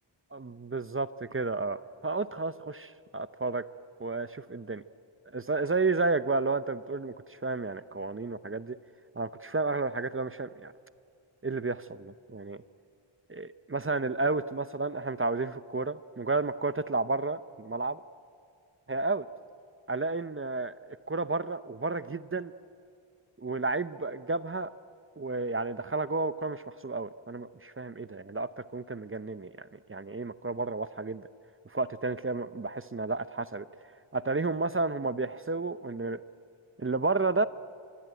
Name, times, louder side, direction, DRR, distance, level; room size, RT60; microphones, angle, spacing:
voice 1, 0.3-3.6 4.0-4.8 5.3-8.8 9.2-10.7 11.4-12.6 13.3-17.9 18.9-19.2 19.9-22.5 23.4-24.7 25.2-31.2 31.7-33.7 34.1-36.2 36.8-37.5, right 3 dB, 25° right, 14 dB, 0.7 m, -31 dB
24.5 x 24.0 x 9.1 m, 2.4 s
wide cardioid pair, 70°, 48 cm